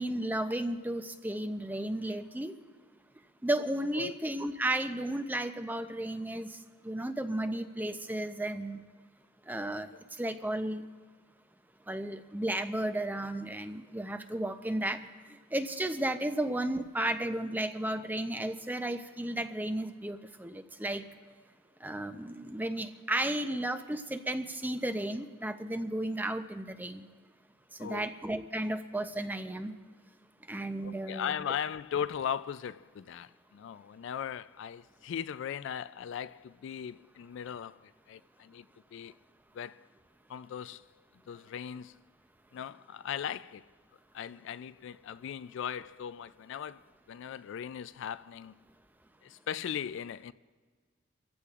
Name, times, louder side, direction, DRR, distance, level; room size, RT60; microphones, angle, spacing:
voice 1, 0.0-2.5 3.4-6.6 6.8-8.8 9.5-9.9 10.2-10.8 11.9-15.0 15.5-21.0 21.8-27.1 27.8-29.7 30.5-31.3, right 1 dB, 10° right, 0.5 m, -33 dB
voice 2, 27.8-28.1 30.8-38.7 38.9-39.1 39.5-39.9 40.3-42.0 42.5-43.7 44.1-48.6 49.2-50.3, left 8 dB, 65° left, 0.3 m, -38 dB
28.5 x 15.0 x 2.4 m
head